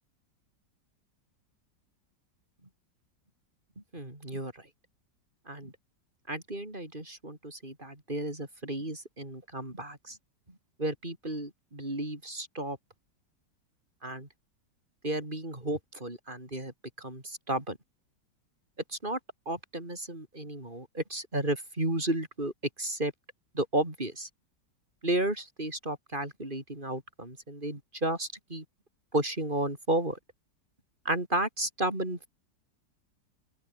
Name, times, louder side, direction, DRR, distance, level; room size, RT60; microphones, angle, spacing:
voice 1, 3.9-4.5 5.5-5.7 6.3-10.2 10.8-12.8 14.0-14.3 15.0-17.8 18.9-19.2 19.5-22.5 22.8-23.1 23.5-24.3 25.0-28.6 29.1-30.2 31.0-32.3, right 1 dB, 25° right, 5.8 m, -33 dB
open air
omnidirectional pair, 1.9 m